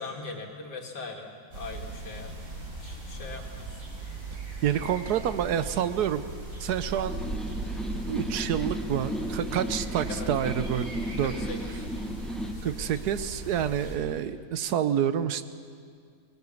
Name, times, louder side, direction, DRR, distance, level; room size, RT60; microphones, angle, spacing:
voice 1, 0.0-2.3 2.8-3.8 10.1-10.3 11.2-11.9 12.4-12.9, left 3 dB, 85° left, 2 dB, 2.6 m, -41 dB
sound 1, 1.5-14.0, right 2 dB, 55° right, 5.3 m, -38 dB
voice 2, 4.6-6.3 6.6-7.2 8.1-11.3 12.6-15.4, right 9 dB, 70° right, 12 dB, 1.3 m, -28 dB
sound 2, 7.1-12.5, equal, ahead, 0.9 m, -35 dB
19.5 x 19.5 x 7.2 m, 2.2 s
omnidirectional pair, 1.8 m